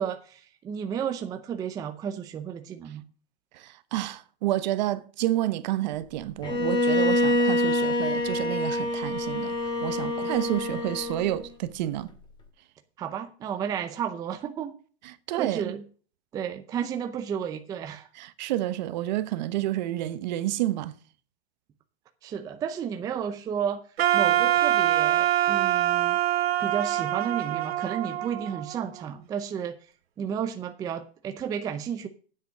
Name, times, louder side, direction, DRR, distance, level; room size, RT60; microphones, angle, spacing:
voice 1, 0.0-3.0 13.0-14.7 15.4-15.8 16.3-18.1 22.2-23.8 24.1-26.2 26.6-29.9 30.2-32.1, right 8 dB, 10° right, 0.6 m, -32 dB
voice 2, 3.5-9.5 9.8-12.1 15.0-15.7 18.2-20.9, right 14 dB, 45° right, 1.1 m, -29 dB
Bowed string instrument, 6.4-11.4, left 1 dB, 15° left, 2.1 m, -26 dB
Wind instrument woodwind instrument, 24.0-29.0, right 12 dB, 70° right, 1.5 m, -24 dB
9.4 x 8.0 x 6.1 m
hypercardioid pair, 155°, 32 cm